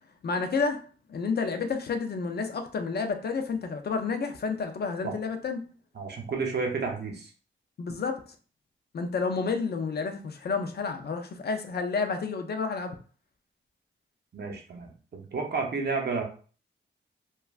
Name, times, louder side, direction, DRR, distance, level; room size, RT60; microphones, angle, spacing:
voice 1, 0.2-0.8 1.1-5.6 7.8-8.2 8.9-12.9, left 4 dB, 55° left, 6 dB, 0.4 m, -30 dB
voice 2, 5.9-7.3 14.3-16.2, right 4 dB, 55° right, 1 dB, 0.7 m, -31 dB
3.0 x 2.3 x 2.4 m, 0.40 s
wide cardioid pair, 105°, 20 cm